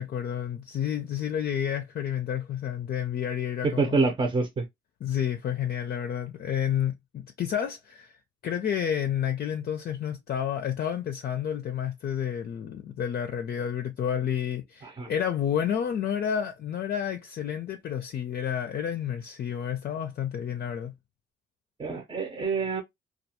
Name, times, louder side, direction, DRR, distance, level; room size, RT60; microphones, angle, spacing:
voice 1, 0.0-4.0 5.0-20.9, left 9 dB, 50° left, 0.5 m, -30 dB
voice 2, 3.6-4.7 14.8-15.1 21.8-22.8, right 4 dB, 25° right, 0.7 m, -26 dB
2.3 x 2.3 x 2.8 m
cardioid pair, 90°, 20 cm